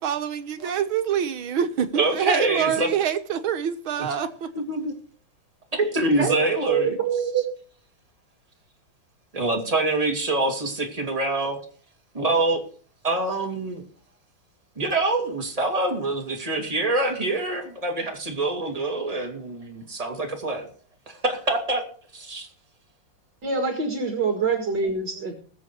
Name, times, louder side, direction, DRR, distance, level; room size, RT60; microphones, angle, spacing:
voice 1, 0.0-4.5, right 8 dB, 80° right, 2.0 m, -25 dB
voice 2, 1.9-2.9 4.0-4.1 4.5-4.9 5.7-7.0 9.3-11.6 12.1-12.6 13.0-13.8 14.8-20.7 21.1-21.8 22.1-22.5 25.2-25.3, right 2 dB, 15° right, 2.7 m, -25 dB
voice 3, 6.2-7.4 23.4-25.3, right 5 dB, 55° right, 2.6 m, -25 dB
20.5 x 7.6 x 4.6 m
omnidirectional pair, 2.2 m